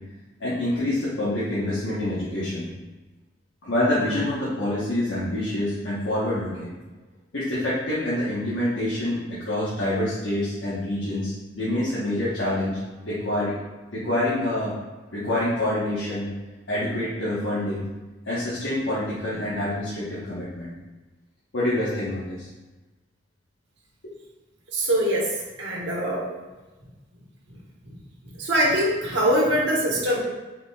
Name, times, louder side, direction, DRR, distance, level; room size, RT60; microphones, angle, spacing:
voice 1, 0.4-2.7 3.6-6.7 7.3-12.8 13.0-13.5 13.9-14.7 15.1-16.3 16.7-17.9 18.2-20.7 21.5-22.5, left 1 dB, 80° left, -9 dB, 1.1 m, -26 dB
voice 2, 24.7-25.3 25.6-26.3 27.9-28.0 28.4-30.2, equal, 70° right, -4 dB, 1.2 m, -23 dB
4.5 x 4.0 x 2.3 m, 1.2 s
head